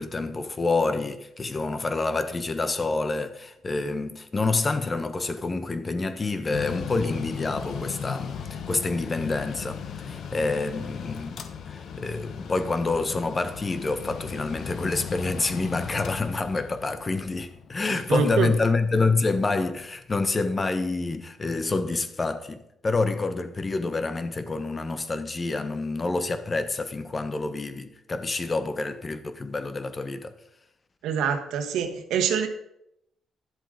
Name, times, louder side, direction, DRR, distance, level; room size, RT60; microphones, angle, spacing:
voice 1, 0.0-30.3, left 3 dB, 30° left, 1.1 m, -27 dB
Mechanical fan, 6.5-19.9, left 7 dB, 65° left, 1.2 m, -37 dB
voice 2, 18.1-18.5 31.0-32.5, right 7 dB, 85° right, 1.3 m, -25 dB
11.0 x 7.5 x 5.1 m
cardioid pair, 90°, 0 cm